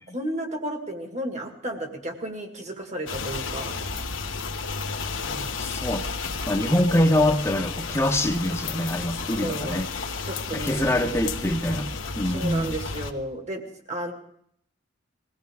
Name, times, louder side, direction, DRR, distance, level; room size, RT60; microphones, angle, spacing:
voice 1, 0.1-3.8 5.2-5.6 9.4-9.9 10.2-10.9 12.3-13.6 13.9-14.1, right 1 dB, 40° right, 4 dB, 1.8 m, -33 dB
sound 1, 3.1-13.1, left 4 dB, 90° left, 1.1 m, -32 dB
voice 2, 5.6-6.1 6.5-9.9 10.5-11.9 12.2-12.8, left 1 dB, 15° left, 5 dB, 0.9 m, -24 dB
21.0 x 16.5 x 3.5 m, 0.68 s
head